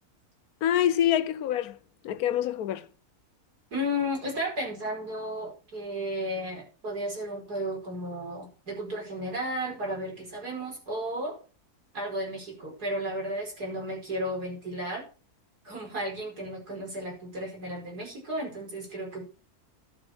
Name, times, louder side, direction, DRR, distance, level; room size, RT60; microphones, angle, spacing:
voice 1, 0.6-1.8 2.0-2.9, left 11 dB, 75° left, 1.2 m, -26 dB
voice 2, 3.7-11.4 11.9-15.0 15.7-19.3, equal, 90° right, 5.6 m, -33 dB
11.5 x 7.7 x 5.9 m
omnidirectional pair, 1.6 m